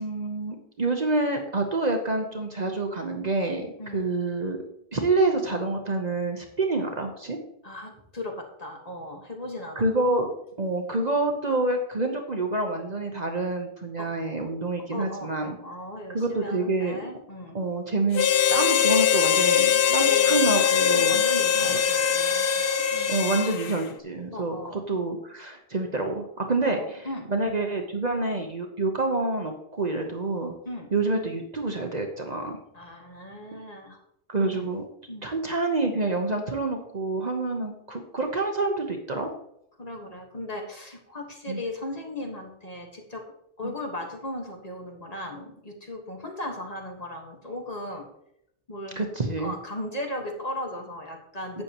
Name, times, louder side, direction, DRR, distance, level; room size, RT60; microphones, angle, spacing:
voice 1, 0.0-3.7 3.9-4.6 4.9-7.4 9.8-10.3 10.6-15.6 16.1-17.0 17.5-21.3 21.5-21.8 23.1-30.5 30.9-32.6 34.3-34.8 35.2-39.3 41.5-41.6 43.6-43.7 49.0-49.5 51.5-51.6, right 2 dB, 40° right, 3 dB, 1.0 m, -27 dB
voice 2, 7.6-10.1 14.0-14.1 14.9-17.6 19.7-20.5 20.9-22.6 22.9-23.2 24.3-24.8 26.6-27.3 30.6-30.9 32.7-34.0 34.4-34.7 35.1-35.2 39.8-43.2 43.6-48.1 48.7-49.1 49.4-51.6, left 1 dB, 35° left, 1 dB, 1.6 m, -37 dB
Harmonica, 18.1-23.8, left 8 dB, 60° left, 0.8 m, -22 dB
12.0 x 8.6 x 3.0 m, 0.77 s
omnidirectional pair, 1.1 m